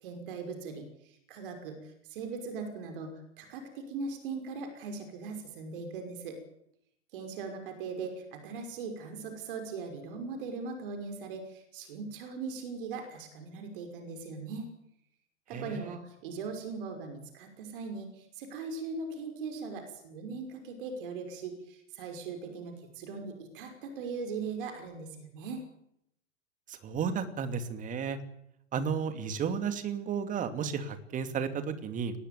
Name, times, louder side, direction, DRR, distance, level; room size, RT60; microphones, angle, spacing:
voice 1, 0.0-6.4 7.1-14.7 15.5-25.6, right 4 dB, 45° right, 6 dB, 5.8 m, -40 dB
voice 2, 15.5-15.8 26.7-28.2 28.7-32.1, right 6 dB, 20° right, 9 dB, 2.7 m, -33 dB
23.5 x 19.5 x 9.3 m, 0.76 s
figure-of-eight pair, 105°, 36 cm